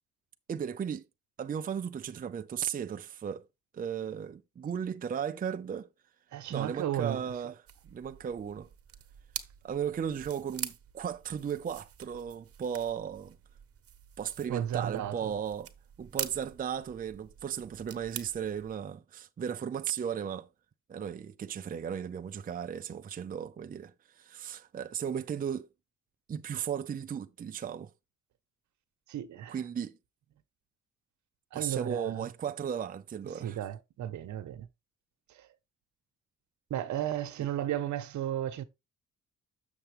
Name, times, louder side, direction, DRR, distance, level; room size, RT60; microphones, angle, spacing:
voice 1, 0.5-1.0 1.4-3.5 3.7-5.9 6.5-7.5 7.8-8.7 9.6-13.4 14.2-15.7 16.0-20.5 20.9-25.7 26.3-27.9 29.5-29.9 31.5-33.6, right 8 dB, 30° right, 0.5 m, -36 dB
voice 2, 6.3-7.3 14.5-15.3 29.1-29.6 31.5-32.3 33.3-34.7 35.3-35.5 36.7-38.6, right 11 dB, 70° right, 1.0 m, -34 dB
sound 1, 7.7-18.8, right 9 dB, 50° right, 1.1 m, -45 dB
6.8 x 6.8 x 3.4 m
cardioid pair, 90°, 30 cm